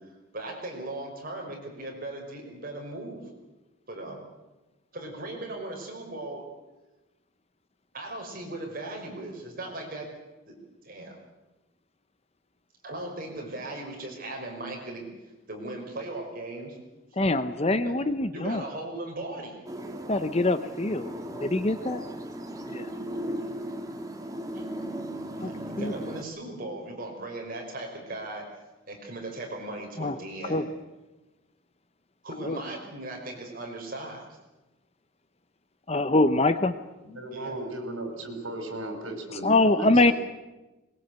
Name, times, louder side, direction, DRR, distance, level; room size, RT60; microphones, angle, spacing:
voice 1, 0.3-3.2 3.9-4.2 4.9-6.4 7.9-10.1 10.5-10.6 10.8-11.2 12.8-15.0 15.5-16.8 17.7-18.0 18.3-19.6 24.5-24.6 25.4-28.5 28.9-30.7 32.2-34.3 37.3-37.6, right 2 dB, 45° right, 1 dB, 5.4 m, -38 dB
voice 2, 17.2-18.6 20.1-21.1 21.4-22.0 22.7-22.9 25.4-25.5 25.8-25.9 30.0-30.1 30.5-30.6 32.4-32.6 35.9-36.7 39.4-40.1, left 2 dB, 30° left, 11 dB, 0.8 m, -24 dB
sound 1, 19.7-26.2, right 1 dB, 15° right, 1.7 m, -37 dB
voice 3, 37.0-39.9, right 1 dB, 75° right, 5 dB, 5.0 m, -36 dB
21.5 x 21.0 x 8.2 m, 1.1 s
head